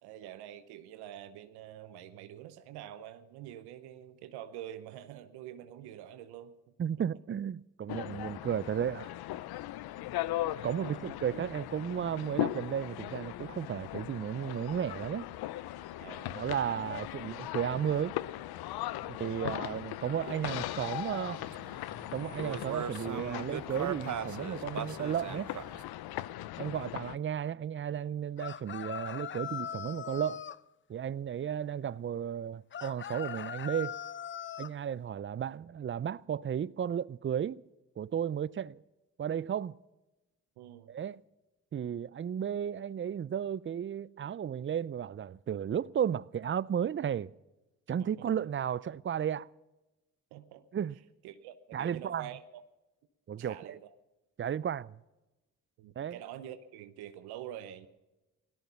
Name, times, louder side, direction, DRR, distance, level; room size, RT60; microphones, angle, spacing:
voice 1, 0.0-6.5 6.8-6.9 10.8-11.1 16.0-16.4 19.0-19.4 26.4-26.5 40.6-40.9 48.0-48.3 50.3-50.6 51.2-52.6 53.4-53.9 55.8-57.9, right 11 dB, 90° right, 0.9 m, -46 dB
voice 2, 6.8-9.1 10.6-15.3 16.3-18.1 19.2-21.4 22.1-25.5 26.6-30.4 30.9-34.0 34.6-37.6 38.0-38.8 39.2-39.8 40.9-41.2 41.7-47.3 47.9-49.5 50.7-51.0 51.7-52.3 53.3-53.8 54.4-55.0 56.0-56.2, right 9 dB, 30° right, 0.5 m, -34 dB
sound 1, 7.9-27.2, left 15 dB, 75° left, 0.6 m, -39 dB
sound 2, 20.2-25.8, right 9 dB, 50° right, 0.9 m, -41 dB
sound 3, 28.4-30.6 32.7-34.7, left 9 dB, 30° left, 0.5 m, -40 dB
17.5 x 13.5 x 5.7 m
supercardioid pair, 50°, 38 cm